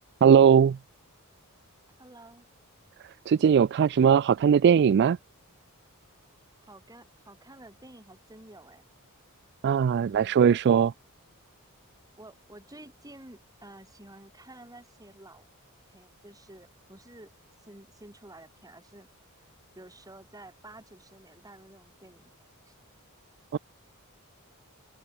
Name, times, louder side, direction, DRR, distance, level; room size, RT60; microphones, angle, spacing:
voice 1, 0.2-0.8 3.3-5.2 9.6-10.9 23.5-23.6, right 7 dB, 50° right, 0.3 m, -19 dB
voice 2, 2.0-2.5 6.6-8.8 9.9-10.6 12.2-15.4 15.9-17.3 17.6-19.1 19.4-22.8, right 1 dB, 15° right, 4.9 m, -51 dB
open air
head